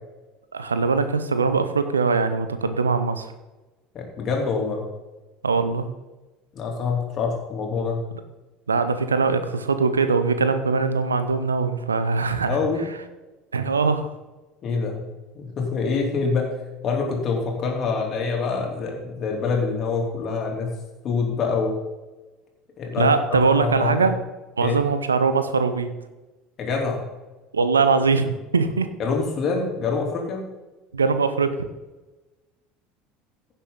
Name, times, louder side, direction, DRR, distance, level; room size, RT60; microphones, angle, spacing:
voice 1, 0.5-3.3 5.4-5.9 8.7-12.7 13.5-14.1 23.0-24.1 24.6-25.9 27.5-28.9 30.9-31.6, right 4 dB, 85° right, 10 dB, 0.7 m, -21 dB
voice 2, 3.9-4.8 6.5-8.0 12.5-12.8 14.6-15.0 15.3-16.5 16.8-20.7 21.0-21.7 22.8-24.1 24.6-24.7 26.6-27.0 29.0-30.4, left 4 dB, 40° left, 0 dB, 3.2 m, -25 dB
16.0 x 6.8 x 4.0 m, 1.1 s
figure-of-eight pair, 65°, 0 cm